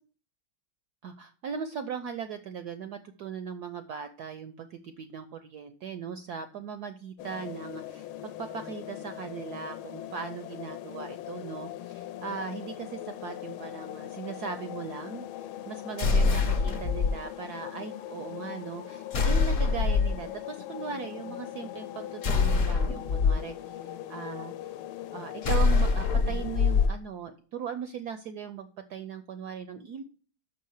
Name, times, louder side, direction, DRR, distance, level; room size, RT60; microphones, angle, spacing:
voice 1, 1.0-24.5 25.1-30.0, right 6 dB, 75° right, 10 dB, 0.9 m, -39 dB
sound 1, 7.2-26.9, left 12 dB, 80° left, 1.4 m, -41 dB
sound 2, 16.0-17.1 19.1-20.2 22.2-23.3 25.4-26.9, left 4 dB, 50° left, 1.0 m, -24 dB
6.0 x 5.6 x 6.4 m, 0.41 s
omnidirectional pair, 2.3 m